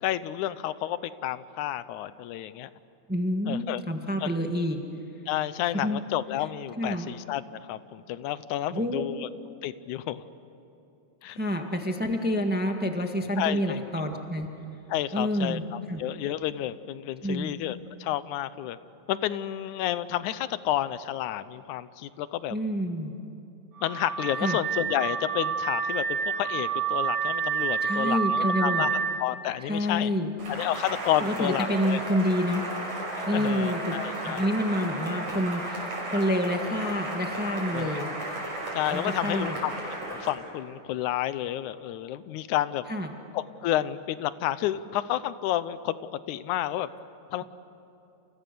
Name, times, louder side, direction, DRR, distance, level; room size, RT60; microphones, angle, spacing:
voice 1, 0.0-2.7 3.5-3.8 4.2-4.4 5.3-9.3 9.6-10.2 11.2-11.4 13.4-13.8 14.9-18.8 19.1-22.6 23.8-28.9 29.2-30.1 30.5-32.0 33.2-34.5 37.7-38.0 38.8-39.7 40.1-42.8 43.3-46.0 46.3-46.9 47.3-47.4, left 12 dB, 85° left, 15 dB, 2.2 m, -30 dB
voice 2, 3.1-4.8 5.8-6.0 6.8-7.1 8.7-9.0 11.3-14.5 15.1-16.0 17.2-17.5 22.5-23.1 24.4-24.6 27.8-28.9 29.6-30.3 31.2-32.6 33.2-34.0 34.3-38.1 38.9-39.6 42.9-43.1, equal, 10° right, 4 dB, 0.5 m, -28 dB
Car / Alarm, 23.8-29.2, right 6 dB, 45° right, 2.1 m, -28 dB
Cheering / Applause, 30.4-40.4, right 1 dB, 80° right, 7.1 m, -34 dB
29.5 x 29.0 x 6.9 m, 2.9 s
omnidirectional pair, 3.4 m